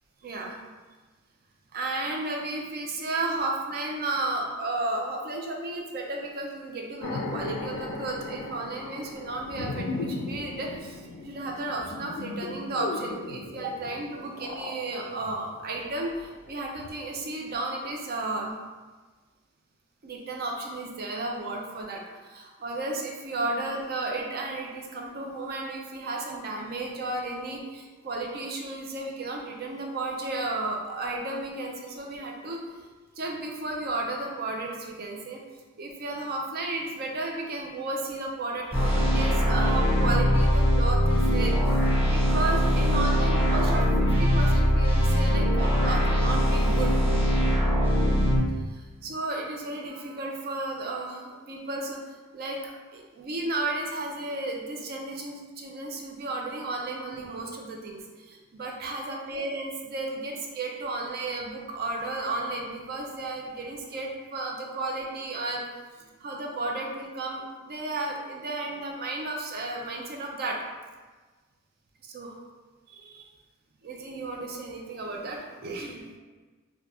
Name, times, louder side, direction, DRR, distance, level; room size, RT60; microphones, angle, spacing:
voice 1, 0.2-0.6 1.7-18.5 20.0-32.9 33.2-35.4 35.8-47.0 48.7-52.0 52.3-65.6 66.0-70.6 72.0-72.4 72.9-73.2 73.8-76.0, right 2 dB, 45° right, 0 dB, 0.4 m, -33 dB
sound 1, 7.0-16.5 16.8-16.9, left 3 dB, 80° left, 0.3 m, -37 dB
sound 2, 38.7-48.4, equal, 10° right, 1.1 m, -22 dB
3.9 x 2.3 x 2.4 m, 1.3 s
head